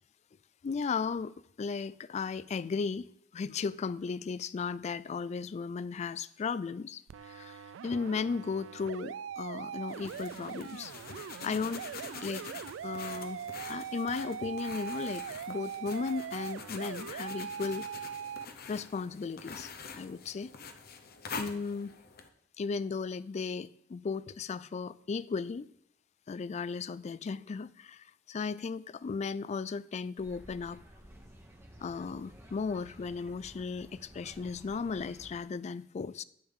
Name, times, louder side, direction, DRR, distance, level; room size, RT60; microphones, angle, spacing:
voice 1, 0.6-3.1 3.3-11.9 12.2-12.4 12.8-13.4 13.7-17.9 18.7-20.5 21.4-22.0 22.6-25.7 26.3-30.8 31.8-36.2, left 5 dB, 35° left, 0.3 m, -36 dB
sound 1, 7.1-18.5, right 8 dB, 70° right, 0.3 m, -41 dB
sound 2, 9.9-22.3, left 5 dB, 50° left, 0.8 m, -46 dB
sound 3, 30.2-35.4, equal, 15° right, 1.1 m, -53 dB
10.0 x 8.9 x 3.7 m
head